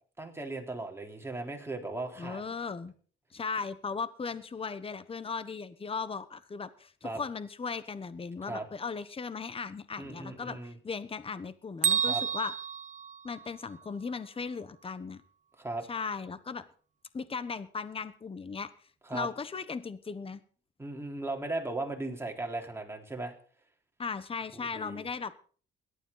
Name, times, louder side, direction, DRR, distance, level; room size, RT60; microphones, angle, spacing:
voice 1, 0.2-2.4 7.0-7.2 8.4-8.7 10.0-10.8 12.1-12.2 15.6-15.8 19.1-19.3 20.8-23.3 24.7-25.1, right 2 dB, 10° right, 1 dB, 3.7 m, -37 dB
voice 2, 2.2-2.9 3.3-12.5 13.2-15.2 15.9-16.6 17.1-18.7 19.1-20.4 24.0-25.3, left 5 dB, 30° left, 14 dB, 1.1 m, -37 dB
Bell, 11.8-13.9, right 7 dB, 40° right, 0.7 m, -31 dB
17.5 x 12.5 x 4.0 m, 0.43 s
cardioid pair, 90°, 20 cm